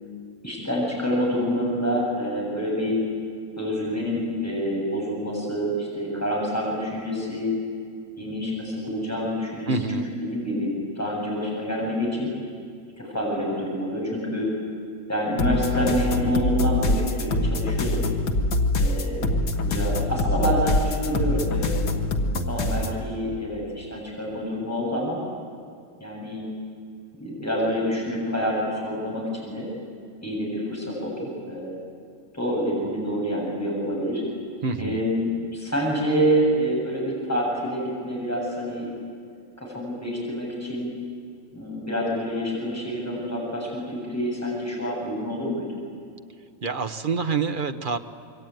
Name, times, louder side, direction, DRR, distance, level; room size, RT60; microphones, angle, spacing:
voice 1, 0.4-3.0 3.6-7.5 8.2-12.3 13.0-14.5 15.1-18.0 18.8-19.3 19.6-21.9 22.5-25.2 26.0-26.5 27.2-29.6 30.2-31.8 32.3-34.2 34.8-38.9 39.6-40.9 41.5-45.6, equal, 10° left, -4 dB, 7.7 m, -27 dB
voice 2, 9.7-10.1 34.6-35.0 46.6-48.0, right 4 dB, 35° right, 8 dB, 0.9 m, -26 dB
sound 1, 15.4-23.0, left 2 dB, 85° left, 2.1 m, -24 dB
26.0 x 23.5 x 9.3 m, 2.3 s
omnidirectional pair, 1.9 m